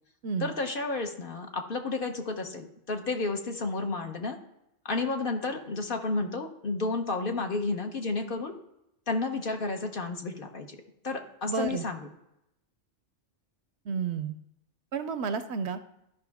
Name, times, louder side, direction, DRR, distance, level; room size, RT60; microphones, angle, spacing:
voice 1, 0.4-4.4 4.8-8.5 9.1-10.7 11.0-12.1, left 3 dB, 50° left, 4 dB, 1.0 m, -31 dB
voice 2, 11.5-11.9 13.9-14.3 14.9-15.8, right 5 dB, 65° right, 11 dB, 0.8 m, -31 dB
12.5 x 5.3 x 3.4 m, 0.84 s
omnidirectional pair, 1.3 m